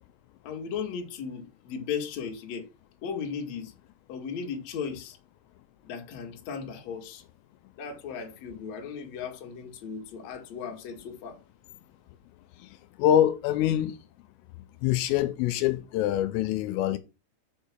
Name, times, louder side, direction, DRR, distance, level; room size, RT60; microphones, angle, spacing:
voice 1, 0.4-2.7 3.0-3.7 4.1-5.2 5.8-7.2 7.8-11.4, left 6 dB, 50° left, 2.1 m, -36 dB
voice 2, 12.6-14.0 14.8-17.0, left 11 dB, 85° left, 3.3 m, -25 dB
7.2 x 5.5 x 7.3 m
omnidirectional pair, 6.0 m